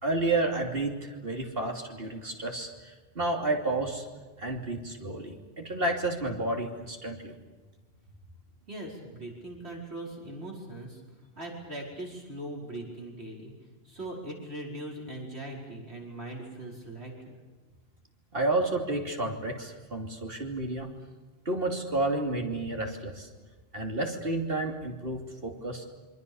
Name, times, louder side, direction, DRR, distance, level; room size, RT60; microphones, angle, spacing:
voice 1, 0.0-4.0 4.4-7.4 18.3-20.9 21.4-23.3 23.7-25.8, right 2 dB, 60° right, 2 dB, 3.2 m, -31 dB
voice 2, 8.7-11.0 11.4-13.5 13.8-17.4, right 1 dB, 80° right, -1 dB, 5.4 m, -40 dB
27.5 x 25.5 x 7.1 m, 1.3 s
omnidirectional pair, 1.1 m